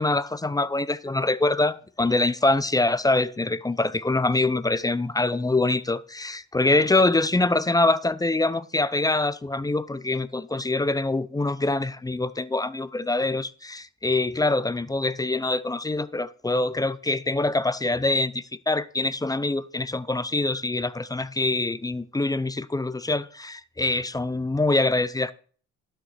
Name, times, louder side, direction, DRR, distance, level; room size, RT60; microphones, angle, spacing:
voice 1, 0.0-25.3, left 2 dB, 10° left, 0.6 m, -24 dB
12.0 x 6.6 x 4.6 m
cardioid pair, 90°, 30 cm